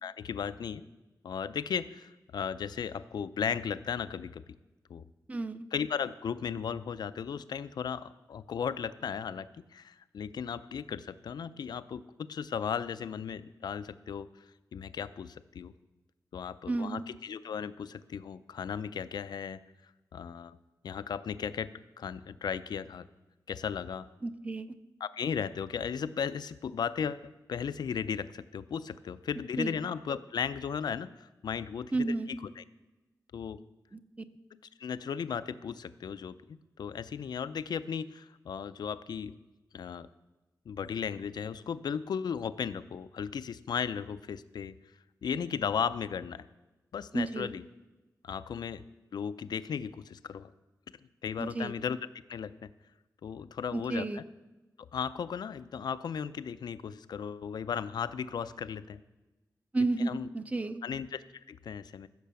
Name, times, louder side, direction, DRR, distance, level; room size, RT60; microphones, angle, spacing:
voice 1, 0.0-0.8 1.2-4.4 4.9-5.0 5.7-14.3 14.7-15.7 16.3-19.6 20.1-20.6 20.8-21.7 22.0-23.1 23.5-24.1 25.0-32.6 33.3-33.6 34.5-39.3 39.7-40.1 40.7-44.7 45.2-46.5 46.9-47.6 48.2-48.8 49.1-50.5 51.2-52.0 52.3-52.7 53.2-54.2 54.8-59.0 60.0-60.3 60.8-62.1, left 7 dB, 80° left, 14 dB, 0.5 m, -36 dB
voice 2, 5.3-5.6 16.7-17.0 24.2-24.8 29.6-29.8 31.9-32.3 33.9-34.0 47.1-47.5 51.4-51.7 53.7-54.2 59.7-60.8, right 2 dB, 20° right, 11 dB, 0.6 m, -32 dB
15.0 x 6.6 x 6.9 m, 1.1 s
wide cardioid pair, 145°, 7 cm